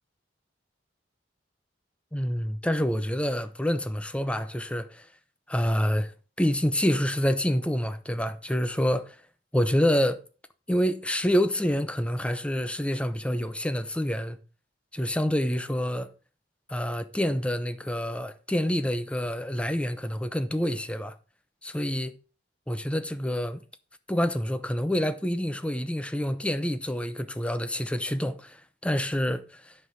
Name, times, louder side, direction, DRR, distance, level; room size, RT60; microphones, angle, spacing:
voice 1, 2.1-5.1 5.5-6.1 6.4-9.2 9.5-10.2 10.7-14.4 14.9-16.1 16.7-21.1 21.6-22.2 22.7-23.6 24.1-29.7, equal, 5° left, 0.6 m, -27 dB
9.6 x 5.5 x 5.7 m
head